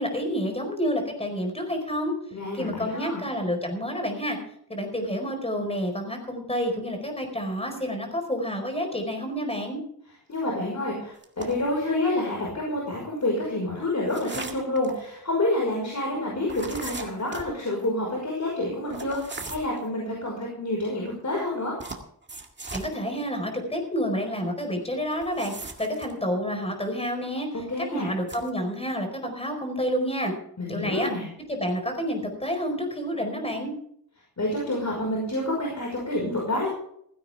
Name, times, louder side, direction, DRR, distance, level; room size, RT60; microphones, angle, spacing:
voice 1, 0.0-2.1 2.5-4.4 4.7-9.8 22.7-25.5 25.8-30.3 30.7-31.1 31.5-33.7, equal, 15° left, 4 dB, 4.7 m, -29 dB
voice 2, 2.3-3.2 10.3-21.8 27.7-28.1 30.6-31.3 34.4-36.7, left 1 dB, 50° left, -2 dB, 5.6 m, -28 dB
sound 1, 11.2-11.7 14.1-15.0 16.5-17.5 18.9-19.8 21.8-22.9 25.1-26.1 28.2-28.5, right 3 dB, 30° right, 2.0 m, -38 dB
16.5 x 15.5 x 3.6 m, 0.68 s
wide cardioid pair, 130°, 37 cm